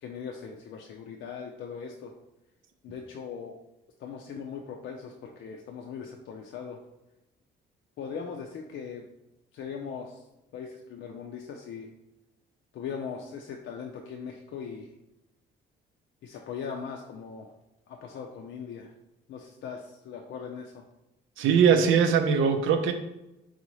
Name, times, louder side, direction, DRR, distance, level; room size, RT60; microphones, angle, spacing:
voice 1, 0.0-2.1 2.8-3.6 4.0-6.8 8.0-9.0 9.5-10.2 10.5-11.9 12.7-14.9 16.2-17.5 17.9-18.9 19.3-20.8, left 6 dB, 70° left, 1 dB, 0.5 m, -39 dB
voice 2, 21.4-22.9, right 7 dB, 85° right, 7 dB, 0.6 m, -21 dB
4.0 x 3.8 x 3.1 m, 0.93 s
cardioid pair, 90°, 20 cm